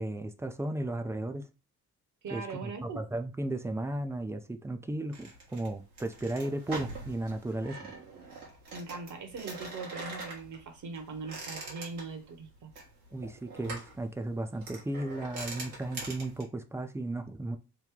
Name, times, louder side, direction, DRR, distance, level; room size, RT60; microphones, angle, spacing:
voice 1, 0.0-1.5 2.3-7.9 13.1-17.6, right 1 dB, 5° right, 0.3 m, -35 dB
voice 2, 2.2-3.0 8.7-12.7, right 4 dB, 40° right, 1.0 m, -41 dB
moving around in squeaky office chair, 5.1-16.4, right 3 dB, 80° right, 1.3 m, -44 dB
3.3 x 2.3 x 3.6 m
figure-of-eight pair, 45°, 45 cm